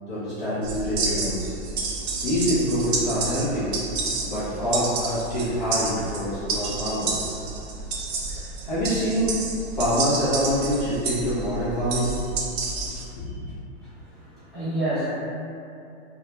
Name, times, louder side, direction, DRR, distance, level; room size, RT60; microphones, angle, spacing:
voice 1, 0.1-1.5 2.2-3.8 4.3-7.2 8.3-9.4 9.8-12.2 13.1-13.5, equal, 40° left, -11 dB, 0.5 m, -26 dB
sound 1, 0.6-13.0, right 4 dB, 65° right, 0.5 m, -30 dB
voice 2, 13.8-15.1, right 1 dB, ahead, -20 dB, 0.7 m, -30 dB
2.1 x 2.1 x 2.8 m, 2.6 s
hypercardioid pair, 170°, 35 cm